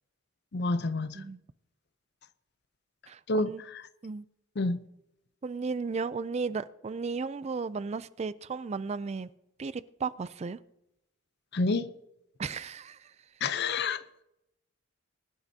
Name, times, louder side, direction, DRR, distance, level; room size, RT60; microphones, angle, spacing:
voice 1, 0.5-1.2 3.3-3.8 4.6-4.8 11.5-11.9 13.4-14.0, left 3 dB, 55° left, 0.6 m, -29 dB
voice 2, 3.1-3.6 4.0-4.3 5.4-9.3 9.6-10.6 12.4-13.1, right 4 dB, 30° right, 0.3 m, -35 dB
21.0 x 11.5 x 2.8 m
head